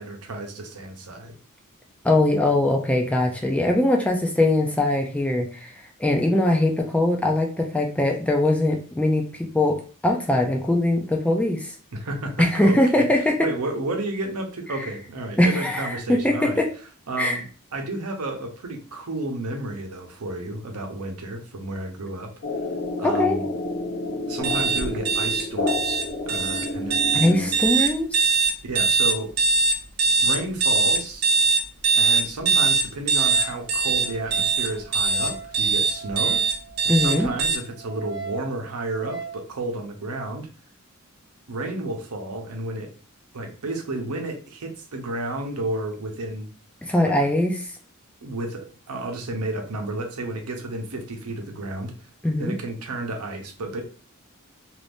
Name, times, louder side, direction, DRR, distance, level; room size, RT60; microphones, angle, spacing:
voice 1, 0.0-1.3 11.9-16.6 17.1-17.4 17.7-22.3 23.0-23.4 24.3-27.5 28.6-29.3 30.2-31.3 32.0-36.4 36.8-40.5 41.5-42.9 43.3-46.5 47.0-47.1 48.2-51.9 52.4-53.8, right 2 dB, 80° right, 4 dB, 0.8 m, -32 dB
voice 2, 2.0-5.7 6.0-11.7 12.4-13.5 14.7-14.9 15.4-16.7 17.2-17.4 23.0-23.4 27.1-28.3 36.9-37.3 46.9-47.7 52.2-52.6, left 1 dB, 5° left, 1 dB, 0.3 m, -21 dB
sound 1, 22.4-27.9, left 2 dB, 60° left, 0.6 m, -29 dB
sound 2, 24.4-37.6, right 4 dB, 50° right, 0.5 m, -21 dB
Wind instrument woodwind instrument, 33.3-39.4, right 5 dB, 15° right, 0.7 m, -39 dB
2.6 x 2.5 x 3.4 m, 0.39 s
head